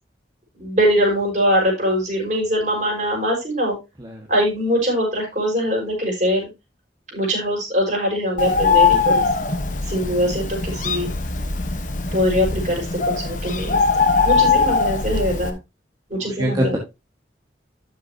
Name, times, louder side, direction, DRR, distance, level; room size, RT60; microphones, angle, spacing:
voice 1, 0.5-3.8 4.3-6.5 7.1-9.3 9.8-11.1 12.1-13.8 14.2-15.6 16.1-16.8, equal, 40° right, -1 dB, 5.7 m, -22 dB
Bird, 8.4-15.5, left 4 dB, 45° left, 1.2 m, -21 dB
voice 2, 16.1-16.8, right 1 dB, 20° right, -1 dB, 1.7 m, -24 dB
12.5 x 6.7 x 2.9 m, 0.25 s
head